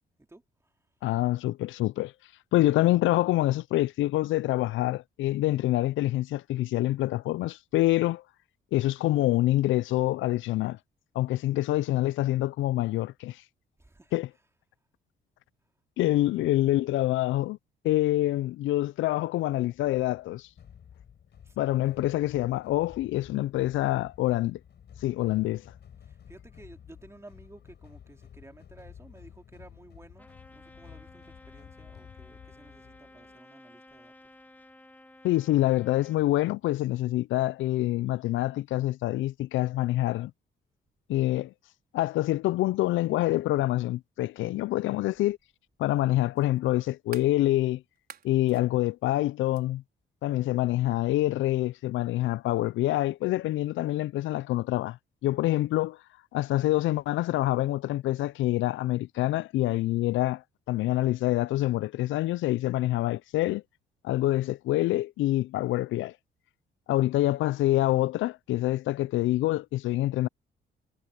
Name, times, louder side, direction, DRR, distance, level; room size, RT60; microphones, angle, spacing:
voice 1, 0.2-0.7 11.2-11.4 13.8-14.2 16.2-16.7 21.4-21.8 26.0-34.3, right 2 dB, 15° right, 3.2 m, -54 dB
voice 2, 1.0-2.1 2.5-8.2 8.7-10.8 11.2-13.4 14.1-14.3 16.0-17.6 17.8-20.5 21.6-24.6 25.0-25.6 35.2-40.3 41.1-41.5 41.9-45.4 45.8-47.8 48.2-49.8 50.2-55.0 55.2-56.0 56.3-60.4 60.7-63.6 64.0-66.1 66.9-70.3, left 16 dB, 75° left, 0.4 m, -26 dB
sound 1, 19.7-33.4, left 8 dB, 60° left, 6.3 m, -52 dB
Trumpet, 30.2-36.2, left 1 dB, 10° left, 2.1 m, -54 dB
sound 2, 44.4-44.5 46.4-47.4 48.0-48.6 49.5-49.7, right 7 dB, 50° right, 5.0 m, -47 dB
cardioid pair, 90°, 20 cm